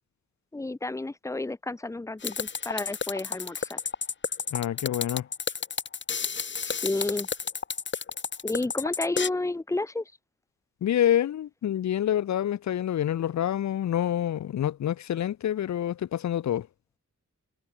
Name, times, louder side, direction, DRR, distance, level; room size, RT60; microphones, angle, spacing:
voice 1, 0.5-3.8 6.6-7.3 8.4-10.0, left 2 dB, 10° left, 0.4 m, -31 dB
sound 1, 2.2-9.3, left 6 dB, 35° left, 0.8 m, -31 dB
voice 2, 4.5-5.3 10.8-16.7, left 11 dB, 65° left, 0.5 m, -27 dB
wide cardioid pair, 145°, 31 cm